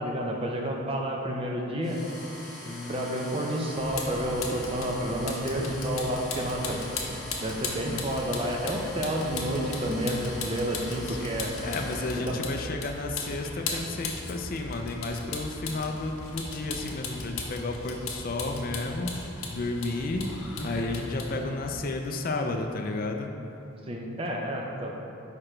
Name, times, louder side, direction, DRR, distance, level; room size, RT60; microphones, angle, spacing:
voice 1, 0.0-2.0 2.9-6.8 7.4-11.5 12.2-12.3 23.9-24.9, equal, 25° right, 0 dB, 0.6 m, -30 dB
sound 1, 1.8-12.2, left 1 dB, ahead, 1.4 m, -43 dB
voice 2, 2.7-3.5 11.1-11.3 11.6-19.1 19.5-20.3 20.6-23.3, left 2 dB, 45° left, 3 dB, 0.4 m, -32 dB
Vehicle, 3.8-21.7, left 3 dB, 85° left, 0.8 m, -37 dB
4.9 x 4.8 x 4.3 m, 2.7 s
head